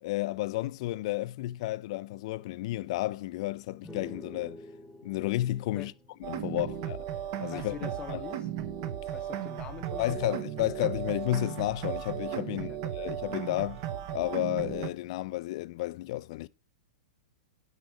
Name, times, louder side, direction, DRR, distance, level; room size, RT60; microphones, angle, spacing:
voice 1, 0.0-4.6 5.0-5.9 6.2-7.1 7.4-8.2 10.0-13.8 14.1-16.5, left 16 dB, 45° left, 0.3 m, -32 dB
sound 1, 3.8-7.4, left 1 dB, 5° right, 1.2 m, -49 dB
sound 2, 6.2-14.9, right 10 dB, 45° right, 0.8 m, -36 dB
voice 2, 6.5-6.8 7.5-8.5 9.1-10.3 12.5-12.8, left 8 dB, 25° left, 0.7 m, -44 dB
9.4 x 5.2 x 4.7 m
figure-of-eight pair, 100°, 4 cm